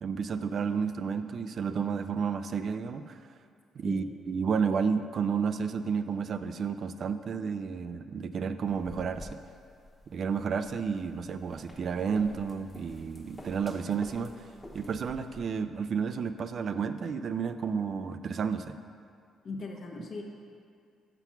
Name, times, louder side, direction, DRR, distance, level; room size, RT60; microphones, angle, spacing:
voice 1, 0.0-3.2 3.8-9.3 10.1-14.4 14.7-18.7, right 6 dB, 55° right, 10 dB, 0.3 m, -31 dB
sound 1, 8.7-15.4, left 1 dB, 20° left, 1.1 m, -50 dB
voice 2, 19.4-20.2, left 3 dB, 55° left, 1 dB, 1.0 m, -39 dB
5.8 x 5.7 x 5.8 m, 2.3 s
cardioid pair, 90°, 0 cm